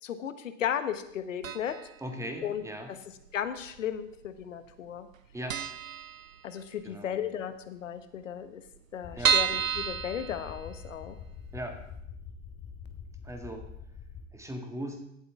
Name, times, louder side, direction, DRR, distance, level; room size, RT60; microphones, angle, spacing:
voice 1, 0.0-1.8 2.4-2.6 2.9-3.0 3.3-5.1 6.4-8.6 8.9-11.2, left 9 dB, 70° left, 10 dB, 1.1 m, -35 dB
sound 1, 1.4-2.0 2.2-2.3 3.3-4.0 4.2-4.4 4.7-4.8 5.1-5.2 5.5-6.8 7.2-7.3 7.6-7.7 7.8-7.9 8.4-11.1 11.5-11.6 12.0-12.1, right 8 dB, 85° right, 0.6 m, -30 dB
voice 2, 2.0-2.9 5.3-5.6 6.8-7.2 9.1-9.3 11.5-11.8 13.2-13.7 14.3-15.1, equal, 5° right, 4 dB, 1.8 m, -38 dB
sound 2, 9.0-14.3, left 6 dB, 25° left, 1.2 m, -45 dB
17.0 x 7.9 x 3.5 m, 0.78 s
figure-of-eight pair, 80°, 39 cm